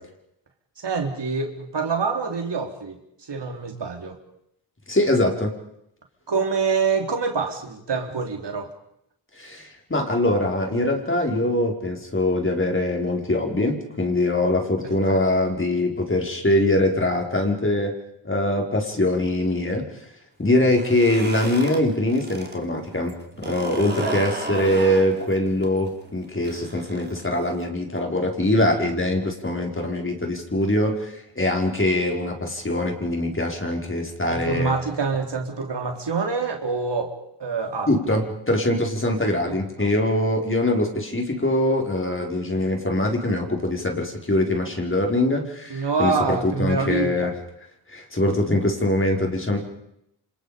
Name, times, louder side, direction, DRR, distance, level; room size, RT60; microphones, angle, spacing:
voice 1, 0.8-3.0 3.3-4.2 6.3-8.7 15.1-15.2 24.0-24.3 34.3-37.1 37.4-38.2 39.5-39.9 45.7-47.3, right 4 dB, 70° right, 3 dB, 4.0 m, -26 dB
voice 2, 4.9-5.5 9.4-17.9 18.2-19.9 20.4-34.7 37.9-47.3 47.9-49.6, left 1 dB, 30° left, 2 dB, 5.4 m, -23 dB
sound 1, 20.6-22.6 22.9-27.6, right 2 dB, 25° right, 4.0 m, -34 dB
29.0 x 27.0 x 5.3 m, 0.79 s
cardioid pair, 70°, 44 cm